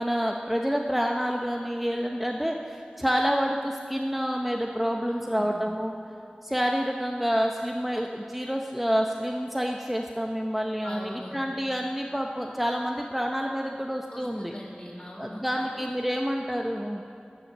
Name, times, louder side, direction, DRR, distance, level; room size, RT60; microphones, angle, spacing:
voice 1, 0.0-5.9 6.4-14.5 15.2-17.0, equal, 5° right, 1 dB, 0.7 m, -28 dB
voice 2, 5.1-5.6 10.8-11.4 14.1-15.9, left 1 dB, 35° left, -3 dB, 3.8 m, -41 dB
11.5 x 10.5 x 7.5 m, 2.5 s
wide cardioid pair, 45°, 3 cm